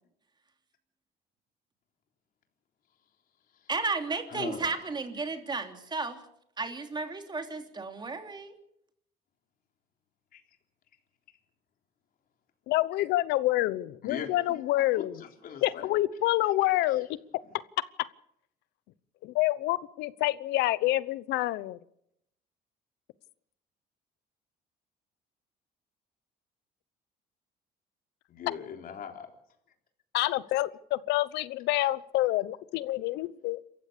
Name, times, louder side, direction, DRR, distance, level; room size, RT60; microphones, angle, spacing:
voice 1, 3.7-6.2 6.6-8.5, right 4 dB, 25° right, 6 dB, 3.2 m, -33 dB
voice 2, 4.3-4.7 10.3-10.4 14.0-16.0 16.9-17.1 17.4-17.5 28.3-29.3, left 7 dB, 60° left, 4 dB, 3.5 m, -41 dB
voice 3, 12.7-15.1 15.6-17.1 17.8-17.9 19.2-21.8 30.1-33.6, left 16 dB, 85° left, 18 dB, 0.9 m, -27 dB
27.5 x 15.0 x 6.8 m, 0.75 s
cardioid pair, 110°, 17 cm